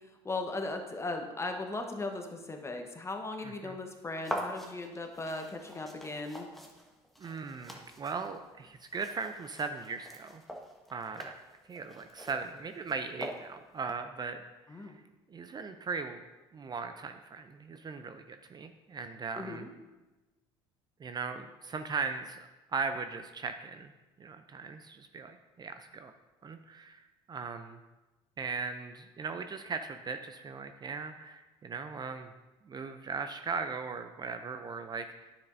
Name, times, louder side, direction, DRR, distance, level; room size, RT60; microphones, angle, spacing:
voice 1, 0.2-6.5 14.7-15.0 19.4-19.7, left 2 dB, 20° left, 4 dB, 1.1 m, -37 dB
voice 2, 3.4-3.8 7.2-10.4 10.9-11.3 11.7-14.4 14.7-15.0 15.3-16.2 16.5-19.6 21.0-22.4 22.7-23.9 24.2-26.1 26.4-27.8 28.4-32.3 32.7-35.3, right 5 dB, 30° right, 8 dB, 0.5 m, -38 dB
sound 1, 4.2-13.8, equal, ahead, 1.3 m, -44 dB
9.5 x 7.0 x 2.6 m, 1.1 s
hypercardioid pair, 70°, 13 cm